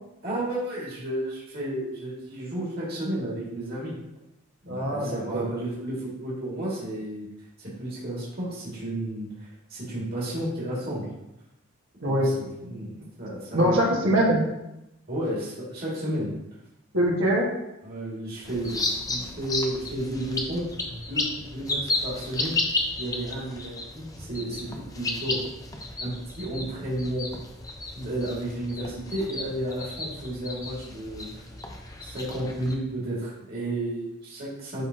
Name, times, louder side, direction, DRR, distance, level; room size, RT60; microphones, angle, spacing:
voice 1, 0.2-4.0 4.6-7.3 7.6-11.1 12.0-13.8 15.1-16.3 17.8-22.6 23.0-25.4 26.0-27.3 27.9-31.4 32.0-34.8, right 1 dB, 45° right, -7 dB, 2.2 m, -32 dB
voice 2, 4.7-5.5 12.0-12.3 13.5-14.4 16.9-17.5, right 1 dB, 65° right, -3 dB, 1.6 m, -23 dB
sound 1, 18.4-32.7, left 2 dB, 15° left, 0.6 m, -33 dB
10.5 x 3.8 x 2.9 m, 0.89 s
head